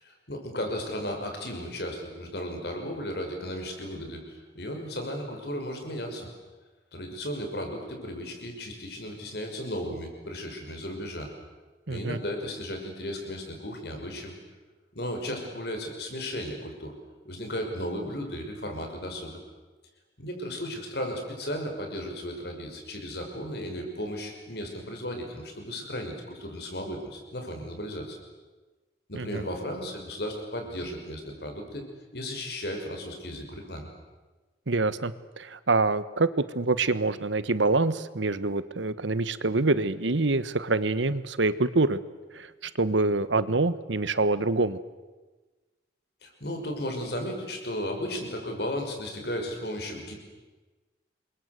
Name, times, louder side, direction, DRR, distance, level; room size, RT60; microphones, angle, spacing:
voice 1, 0.0-6.3 6.9-11.3 11.9-14.3 14.9-16.9 17.2-19.4 20.2-28.2 29.1-31.8 32.1-33.9 46.2-50.1, equal, 55° left, 3 dB, 5.9 m, -35 dB
voice 2, 11.9-12.2 29.1-29.4 34.7-36.3 36.5-42.0 42.3-44.8, right 3 dB, 80° right, 15 dB, 1.2 m, -26 dB
28.0 x 23.0 x 8.1 m, 1.3 s
head